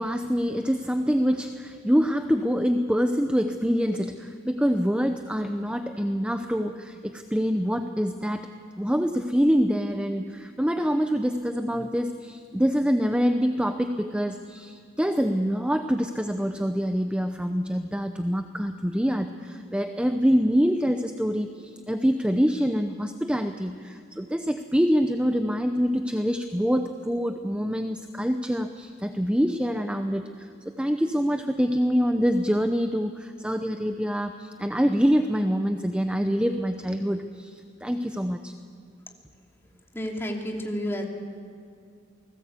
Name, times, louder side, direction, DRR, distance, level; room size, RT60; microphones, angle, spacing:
voice 1, 0.0-8.5 8.8-38.5, equal, 5° right, 7 dB, 0.7 m, -25 dB
voice 2, 39.9-41.0, equal, 15° left, 0 dB, 3.0 m, -30 dB
28.5 x 19.5 x 8.3 m, 2.2 s
head